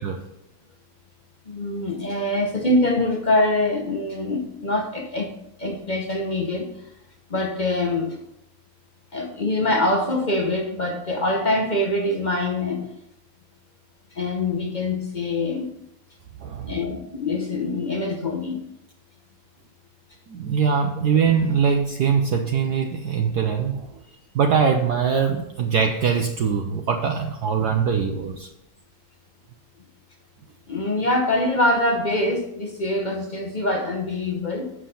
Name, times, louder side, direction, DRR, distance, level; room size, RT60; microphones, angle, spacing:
voice 1, 1.5-6.7 7.3-8.2 9.1-12.9 14.1-15.8 16.7-18.6 30.7-34.7, left 2 dB, 45° left, 0.6 m, -24 dB
voice 2, 16.4-16.7 20.3-23.9 24.3-28.5, right 6 dB, 65° right, 1.2 m, -22 dB
8.4 x 6.1 x 5.6 m
omnidirectional pair, 2.1 m